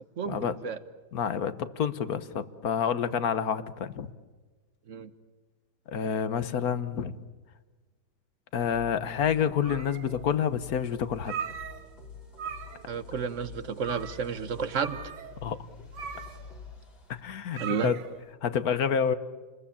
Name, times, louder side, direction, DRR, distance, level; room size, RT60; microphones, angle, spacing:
voice 1, 0.2-0.8 4.9-5.1 12.9-15.0 17.6-17.9, right 6 dB, 45° right, 12 dB, 1.3 m, -31 dB
voice 2, 1.1-4.1 5.9-7.2 8.5-11.3 15.4-15.6 17.2-18.0 18.4-19.1, left 7 dB, 55° left, 13 dB, 1.5 m, -28 dB
sound 1, 8.5-17.2, left 5 dB, 85° left, 5.0 m, -47 dB
sound 2, 9.4-10.3 10.7-10.8 11.1-12.1 12.3-13.0 13.2-13.3 13.8-14.3 14.7-18.3, right 7 dB, 65° right, 1.8 m, -40 dB
29.5 x 21.5 x 8.6 m, 1.3 s
omnidirectional pair, 2.1 m